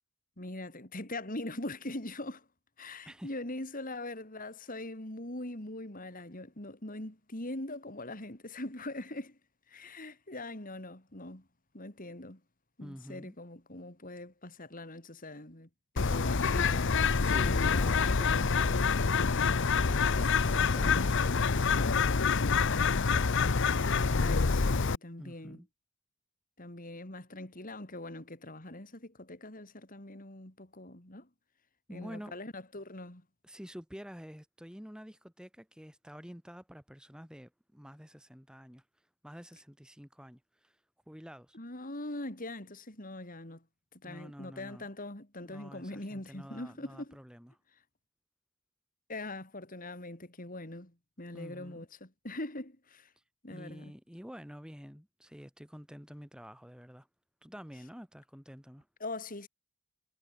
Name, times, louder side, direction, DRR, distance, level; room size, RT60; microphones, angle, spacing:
voice 1, 0.4-2.5 2.8-9.4 9.7-11.5 11.7-12.4 12.8-15.7 15.9-16.9 17.7-18.2 19.9-20.2 24.2-25.6 26.6-31.3 31.9-33.2 41.5-43.6 44.0-47.2 49.1-53.1 53.4-53.9 59.0-59.5, left 2 dB, 40° left, 3.6 m, -42 dB
voice 2, 12.8-13.4 17.2-18.9 19.6-22.2 23.9-24.6 25.2-25.7 31.9-32.3 33.4-40.8 41.1-41.6 44.0-44.9 45.4-47.5 51.3-51.9 53.5-57.1 57.4-58.9, equal, 5° right, 2.1 m, -48 dB
Bird, 16.0-25.0, left 5 dB, 55° left, 0.8 m, -27 dB
head